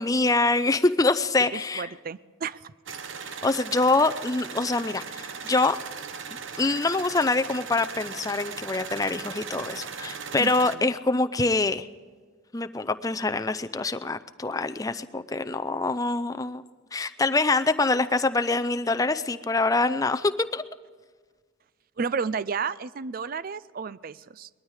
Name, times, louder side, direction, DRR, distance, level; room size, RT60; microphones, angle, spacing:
voice 1, 0.0-1.9 3.4-5.8 6.6-11.9 12.5-16.6 16.9-20.6, left 3 dB, 15° left, 10 dB, 0.5 m, -25 dB
voice 2, 1.5-2.7 10.4-10.9 22.0-24.5, right 5 dB, 45° right, 18 dB, 0.4 m, -32 dB
sound 1, 2.9-10.8, right 6 dB, 70° right, 0.9 m, -38 dB
20.0 x 13.0 x 4.9 m, 1.5 s
head